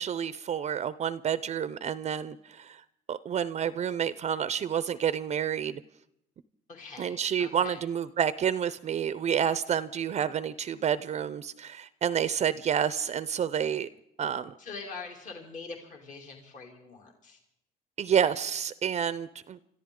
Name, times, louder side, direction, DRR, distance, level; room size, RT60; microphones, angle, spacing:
voice 1, 0.0-2.8 3.1-5.8 7.0-13.9 14.2-14.5 18.0-19.6, right 8 dB, 40° right, 15 dB, 0.5 m, -29 dB
voice 2, 6.7-7.8 14.6-17.4, left 4 dB, 45° left, 1 dB, 2.8 m, -44 dB
26.5 x 14.0 x 3.7 m, 0.79 s
cardioid pair, 110°, 17 cm